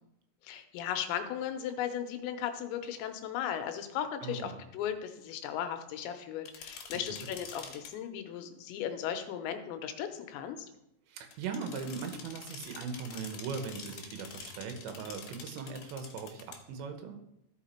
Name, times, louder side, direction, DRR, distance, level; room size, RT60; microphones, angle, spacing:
voice 1, 0.4-10.6, left 9 dB, 90° left, 7 dB, 3.1 m, -36 dB
voice 2, 4.2-4.6 7.1-7.3 11.1-17.2, right 5 dB, 80° right, 5 dB, 3.3 m, -39 dB
sound 1, 6.5-7.9 11.3-16.6, left 6 dB, 65° left, 2.6 m, -47 dB
14.0 x 5.0 x 4.3 m, 0.83 s
omnidirectional pair, 5.1 m